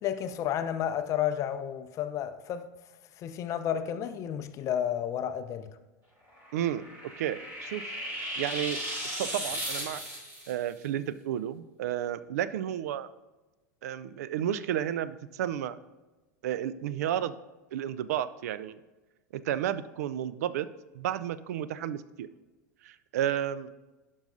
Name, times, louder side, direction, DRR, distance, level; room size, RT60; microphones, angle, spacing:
voice 1, 0.0-2.7 3.2-5.8, left 10 dB, 35° left, 0.5 m, -31 dB
sound 1, 6.4-10.5, equal, 25° right, 2.7 m, -36 dB
voice 2, 6.5-6.8 7.2-7.9 8.4-8.8 9.2-10.0 10.5-13.1 13.8-15.8 16.4-17.3 17.7-18.8 19.3-20.7 20.9-22.3 22.8-23.7, right 11 dB, 60° right, 0.4 m, -32 dB
11.5 x 5.4 x 2.6 m
figure-of-eight pair, 90°, 10 cm